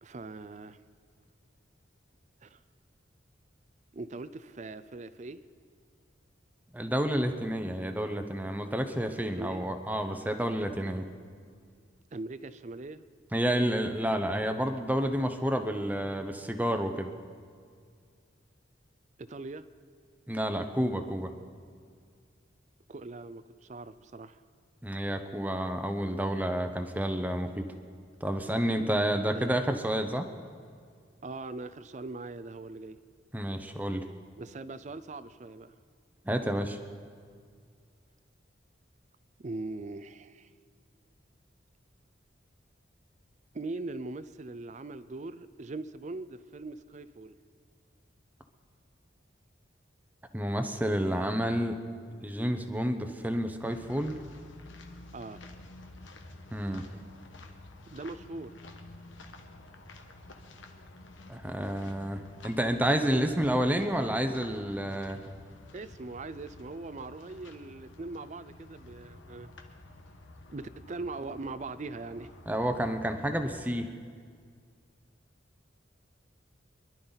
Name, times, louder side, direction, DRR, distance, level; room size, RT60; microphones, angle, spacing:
voice 1, 0.0-0.8 2.4-2.6 3.9-5.4 9.1-9.7 12.1-13.0 19.2-19.7 22.9-24.4 29.3-29.6 31.2-33.0 34.4-35.7 39.4-40.5 43.5-47.3 55.1-55.4 57.9-58.5 63.1-63.3 65.7-69.5 70.5-72.3, right 3 dB, 40° right, 14 dB, 0.5 m, -41 dB
voice 2, 6.7-11.1 13.3-17.1 20.3-21.3 24.8-27.7 28.2-30.3 33.3-34.1 36.3-36.8 50.3-51.8 52.2-54.2 56.5-56.9 61.3-65.3 72.5-73.9, equal, 10° right, 7 dB, 0.7 m, -30 dB
sound 1, 53.6-73.5, left 2 dB, 85° left, 1.2 m, -50 dB
24.5 x 11.5 x 4.0 m, 2.1 s
head